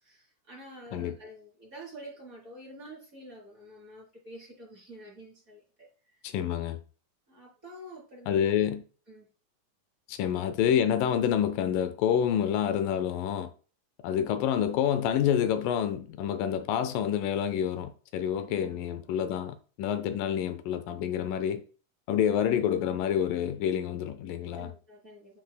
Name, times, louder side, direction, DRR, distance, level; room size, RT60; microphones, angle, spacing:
voice 1, 0.0-6.2 7.3-8.6 9.1-9.3 10.1-10.2 18.4-18.8 22.2-22.3 24.6-25.4, right 1 dB, 25° right, 4.2 m, -48 dB
voice 2, 6.2-6.8 8.3-8.8 10.1-13.5 14.0-21.6 22.1-24.7, left 9 dB, 85° left, 2.3 m, -28 dB
10.0 x 6.0 x 2.2 m
omnidirectional pair, 3.9 m